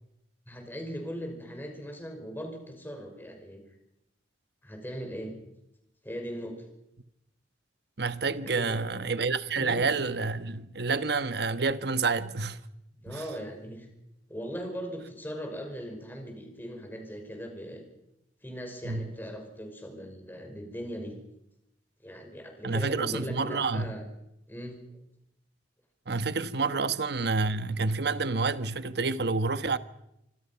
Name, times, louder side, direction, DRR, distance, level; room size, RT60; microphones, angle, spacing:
voice 1, 0.5-3.6 4.6-5.3 6.0-6.6 8.4-8.8 9.5-9.9 13.0-13.9 14.3-17.9 18.4-21.1 22.0-24.1 24.5-25.0 26.7-26.9, equal, 10° left, 5.6 m, -39 dB
voice 2, 8.0-12.6 13.1-13.2 18.8-19.1 22.6-23.9 26.1-29.8, right 4 dB, 60° right, 1.3 m, -28 dB
26.0 x 25.5 x 5.9 m
head